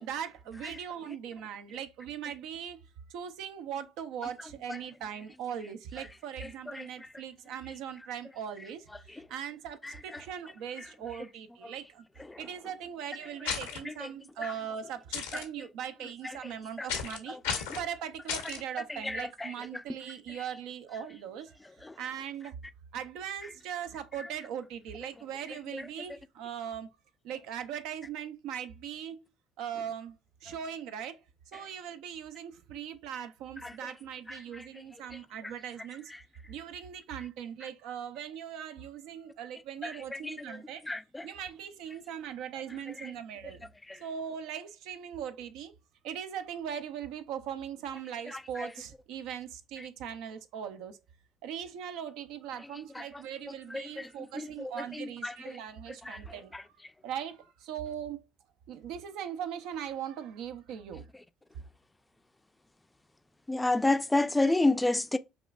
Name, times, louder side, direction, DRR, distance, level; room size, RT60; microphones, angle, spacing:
voice 1, 0.0-2.8 3.1-12.1 12.4-17.4 17.8-21.5 22.0-22.6 22.9-26.9 27.2-29.2 29.6-30.2 30.4-31.2 31.5-36.1 36.5-40.9 41.2-43.7 44.0-45.7 46.0-51.0 51.4-56.5 57.0-58.3 58.7-61.1 61.5-61.6, right 9 dB, 70° right, 0.4 m, -40 dB
voice 2, 6.4-6.9 9.8-10.2 10.8-10.9 12.2-12.4 13.8-14.1 14.4-14.6 15.3-15.4 16.8-16.9 17.3-17.6 18.5-18.6 18.9-19.8 25.7-25.8 33.6-33.7 34.3-34.4 39.8-40.3 40.8-41.3 43.0-43.1 48.6-48.7 53.0-53.1 53.7-54.1 54.3-55.6 56.1-56.2 56.5-56.6 63.5-65.2, left 2 dB, 15° left, 0.4 m, -31 dB
sound 1, 13.4-13.8 15.1-15.4 16.9-17.2 17.4-17.8 18.3-18.6, left 7 dB, 85° left, 0.7 m, -33 dB
5.4 x 2.3 x 2.3 m
hypercardioid pair, 60°, 0 cm